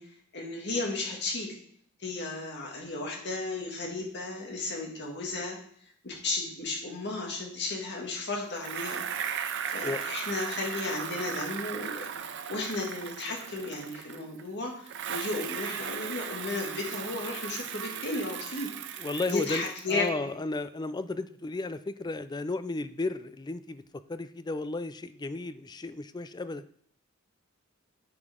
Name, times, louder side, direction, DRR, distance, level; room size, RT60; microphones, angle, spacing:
voice 1, 0.0-1.5 2.0-5.6 6.0-9.0 9.7-12.1 12.5-18.7 19.3-20.3, left 2 dB, 55° left, -1 dB, 2.2 m, -34 dB
Bicycle, 8.6-14.4 14.9-20.1, right 8 dB, 60° right, 0.7 m, -37 dB
voice 2, 19.0-26.6, left 2 dB, 20° left, 13 dB, 0.4 m, -34 dB
9.8 x 6.9 x 3.7 m, 0.62 s
head